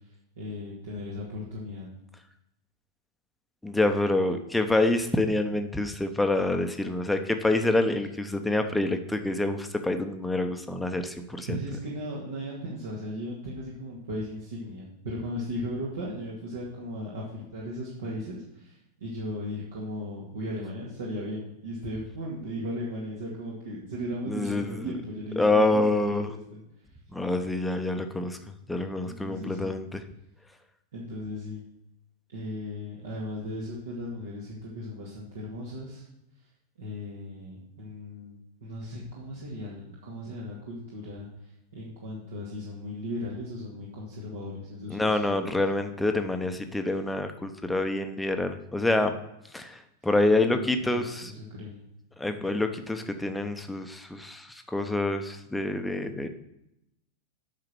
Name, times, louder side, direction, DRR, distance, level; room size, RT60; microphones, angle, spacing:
voice 1, 0.4-1.9 11.5-26.6 29.0-29.7 30.9-31.6 32.3-36.1 36.8-45.5 50.5-51.8, left 1 dB, 60° right, -5 dB, 2.0 m, -37 dB
voice 2, 3.6-11.6 24.3-24.9 25.4-26.3 27.1-28.4 28.7-30.0 44.9-49.1 49.5-51.3 52.2-56.3, left 2 dB, 5° left, 6 dB, 0.9 m, -27 dB
8.8 x 5.7 x 6.2 m, 0.84 s
figure-of-eight pair, 90°, 0 cm